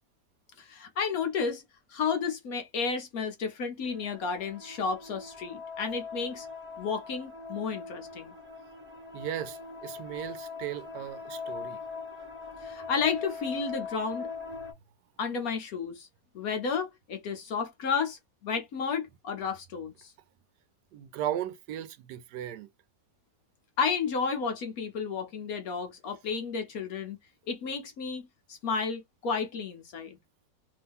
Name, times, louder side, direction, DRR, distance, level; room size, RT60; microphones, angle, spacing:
voice 1, 0.6-1.6 1.9-6.5 6.8-8.3 12.6-14.3 15.2-16.1 16.3-20.1 23.8-27.2 27.5-30.2, left 5 dB, 65° left, 1.1 m, -32 dB
sound 1, 3.8-14.7, left 5 dB, 10° right, 1.1 m, -41 dB
voice 2, 9.1-11.8 20.9-22.7, right 11 dB, 80° right, 1.2 m, -36 dB
3.0 x 2.7 x 3.4 m
omnidirectional pair, 1.8 m